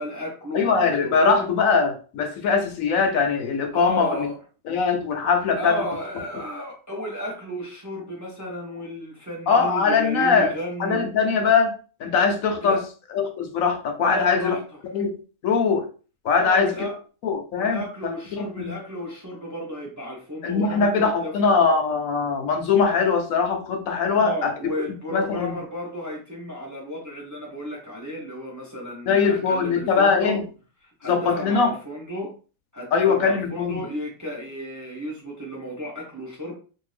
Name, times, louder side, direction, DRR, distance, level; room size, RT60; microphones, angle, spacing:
voice 1, 0.0-1.5 3.7-4.4 5.6-11.1 12.6-12.8 14.0-14.6 16.3-16.9 17.6-21.3 24.2-30.4 30.8-32.3 32.7-36.5, equal, 20° right, -3 dB, 0.6 m, -33 dB
voice 2, 0.5-4.3 4.7-5.7 9.5-10.5 10.8-11.7 12.0-12.8 13.1-14.6 14.9-15.2 15.4-15.8 16.2-16.7 17.2-17.8 18.3-18.7 20.4-24.5 25.1-25.5 29.1-30.4 31.1-31.7 32.9-33.8, left 5 dB, 75° left, 5 dB, 1.1 m, -21 dB
2.6 x 2.6 x 3.2 m, 0.38 s
omnidirectional pair, 1.5 m